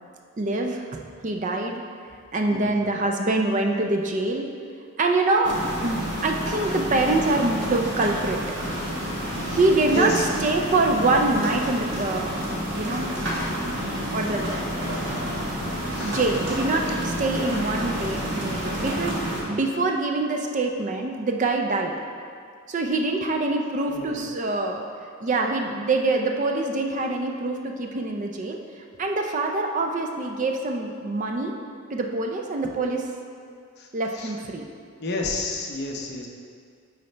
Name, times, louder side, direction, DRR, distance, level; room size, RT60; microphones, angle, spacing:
voice 1, 0.4-1.8 2.3-4.5 5.0-8.4 9.4-10.1 10.4-12.4 12.7-13.1 14.1-14.6 16.0-22.0 22.7-24.8 25.2-28.6 29.0-31.5 31.9-33.1 33.9-34.7, right 2 dB, 35° right, 3 dB, 0.4 m, -25 dB
voice 2, 2.5-3.0 9.9-10.3 15.9-16.2 23.9-24.3 33.8-34.3 35.0-36.3, left 1 dB, 50° left, 0 dB, 0.7 m, -31 dB
sound 1, 5.4-19.4, equal, 55° right, 1.3 m, -29 dB
9.5 x 4.1 x 3.3 m, 2.2 s
head